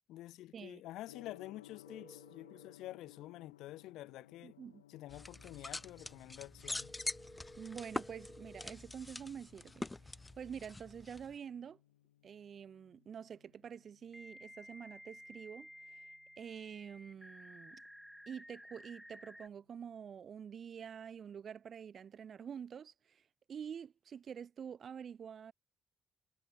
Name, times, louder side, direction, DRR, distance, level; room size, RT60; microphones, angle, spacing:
voice 1, 0.1-4.6 4.9-6.9, left 15 dB, 65° left, 1.4 m, -49 dB
Gong, 1.1-20.1, left 13 dB, 80° left, 2.9 m, -63 dB
sound 1, 1.9-2.7 6.8-8.7 11.4-11.5 14.1-19.5, equal, ahead, 1.0 m, -55 dB
voice 2, 4.4-4.8 7.6-11.8 12.2-16.0 16.4-17.8 18.3-23.2 23.5-25.5, right 7 dB, 50° right, 0.4 m, -47 dB
sound 2, 5.1-11.4, left 2 dB, 20° left, 0.4 m, -44 dB
figure-of-eight pair, 45°, 0 cm